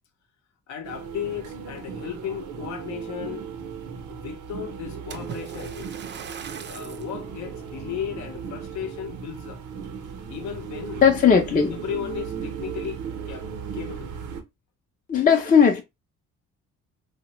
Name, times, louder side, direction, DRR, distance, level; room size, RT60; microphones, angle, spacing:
voice 1, 0.7-3.5 4.1-5.9 6.7-9.6 10.3-11.1 11.6-14.1, left 9 dB, 70° left, 0.7 m, -35 dB
sound 1, 0.8-14.4, right 6 dB, 90° right, 0.7 m, -36 dB
Splash splatter, 5.1-7.1 7.8-8.0 8.6-8.7, right 7 dB, 40° right, 0.4 m, -40 dB
voice 2, 11.0-11.8 15.1-15.8, left 6 dB, 30° left, 0.5 m, -17 dB
3.2 x 2.1 x 2.9 m
cardioid pair, 90°, 30 cm